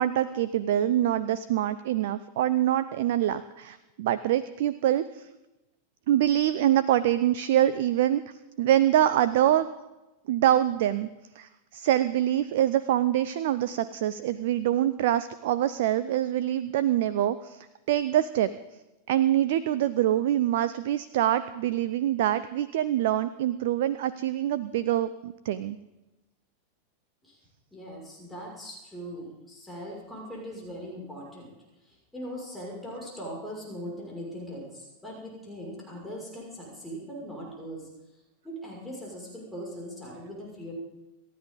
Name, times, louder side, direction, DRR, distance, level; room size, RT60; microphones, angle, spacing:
voice 1, 0.0-5.3 6.1-8.2 8.6-9.7 10.3-11.1 11.4-18.5 19.1-25.8, right 12 dB, 55° right, 15 dB, 0.6 m, -25 dB
voice 2, 27.7-31.5 31.8-37.9 38.4-40.7, equal, 5° left, -3 dB, 5.9 m, -40 dB
27.5 x 13.0 x 3.9 m, 1.0 s
figure-of-eight pair, 90°, 0 cm